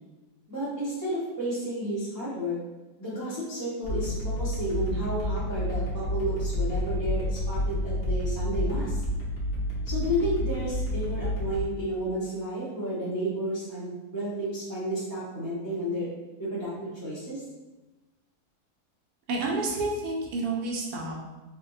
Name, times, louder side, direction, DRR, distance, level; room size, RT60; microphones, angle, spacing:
voice 1, 0.5-2.6 3.0-9.0 9.8-16.1 16.4-17.4, equal, 20° right, -10 dB, 0.7 m, -32 dB
sound 1, 3.8-11.6, left 1 dB, 65° left, 1.3 m, -29 dB
voice 2, 19.3-21.2, right 2 dB, 85° right, -1 dB, 1.2 m, -29 dB
4.1 x 2.2 x 2.6 m, 1.1 s
omnidirectional pair, 1.7 m